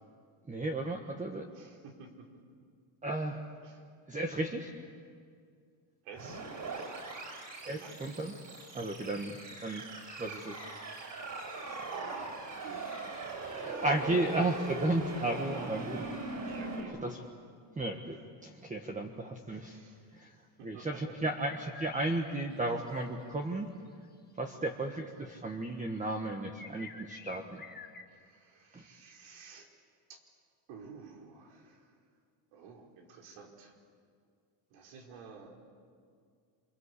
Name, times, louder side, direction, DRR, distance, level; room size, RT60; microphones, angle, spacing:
voice 1, 0.5-1.4 3.0-3.4 4.1-4.7 7.6-8.3 8.7-9.8 10.2-10.6 13.6-16.0 17.0-17.2 17.8-19.8 20.1-20.3 20.6-23.7 24.4-27.6 28.7-28.8, right 2 dB, 15° right, 2 dB, 1.5 m, -34 dB
voice 2, 1.5-2.3 3.6-3.8 6.0-6.4 7.6-8.0 11.9-12.9 15.2-16.0 16.4-17.0 19.7-20.0 20.3-21.2 24.4-24.9 28.1-29.7 30.1-30.2 30.7-31.9 32.5-33.8 34.7-35.6, right 5 dB, 90° right, 1 dB, 4.9 m, -50 dB
sound 1, 6.2-16.8, right 3 dB, 40° right, 7.9 m, -41 dB
sound 2, 21.4-23.1 24.4-24.5 26.5-28.0, left 4 dB, 20° left, 1.6 m, -49 dB
28.0 x 25.5 x 8.4 m, 2.2 s
cardioid pair, 135°, 50 cm